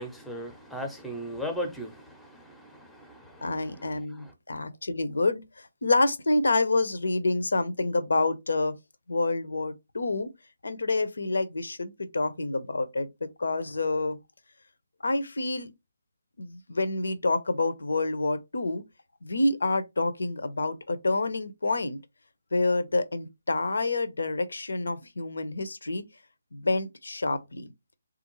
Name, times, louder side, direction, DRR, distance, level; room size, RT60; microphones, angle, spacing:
voice 1, 0.0-4.3, equal, ahead, 0.6 m, -38 dB
voice 2, 3.4-8.7 9.1-10.3 10.6-14.2 15.0-15.7 16.4-18.8 19.2-22.0 22.5-26.1 26.5-27.7, left 2 dB, 65° left, 0.6 m, -28 dB
3.5 x 2.5 x 3.0 m
figure-of-eight pair, 145°, 0 cm